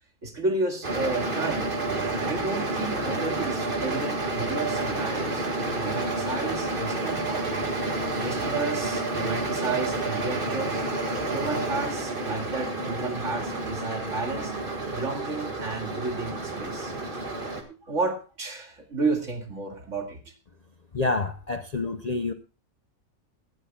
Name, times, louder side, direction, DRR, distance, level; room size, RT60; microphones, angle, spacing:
voice 1, 0.2-1.7 2.2-7.5 8.2-10.9 11.3-14.6 14.9-16.9 17.9-20.3, right 3 dB, 60° right, 3 dB, 2.6 m, -32 dB
sound 1, 0.8-17.6, right 2 dB, 40° right, 1.9 m, -29 dB
voice 2, 20.9-22.3, left 3 dB, 40° left, 8 dB, 0.6 m, -28 dB
17.0 x 13.0 x 2.3 m, 0.33 s
omnidirectional pair, 1.4 m